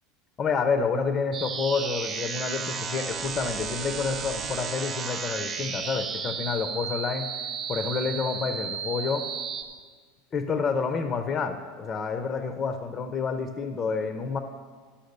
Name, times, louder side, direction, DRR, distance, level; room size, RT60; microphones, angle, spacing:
voice 1, 0.4-7.3 7.7-9.3 10.3-14.4, left 5 dB, 20° left, 8 dB, 0.5 m, -29 dB
sound 1, 1.3-9.6, right 6 dB, 25° right, 0.8 m, -33 dB
11.5 x 5.7 x 6.6 m, 1.6 s
supercardioid pair, 160°, 0 cm